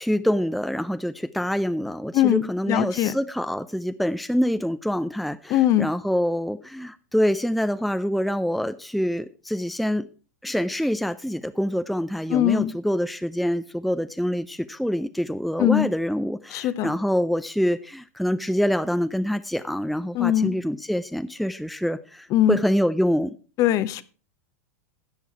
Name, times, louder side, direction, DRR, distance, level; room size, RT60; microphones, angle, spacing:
voice 1, 0.0-10.1 10.4-23.4, equal, ahead, 11 dB, 0.5 m, -25 dB
voice 2, 2.1-3.1 5.5-5.9 12.3-12.7 15.6-15.9 16.5-16.9 20.1-20.6 22.3-22.6 23.6-24.0, left 12 dB, 40° left, 15 dB, 0.8 m, -21 dB
13.0 x 8.3 x 4.6 m, 0.36 s
hypercardioid pair, 100°, 9 cm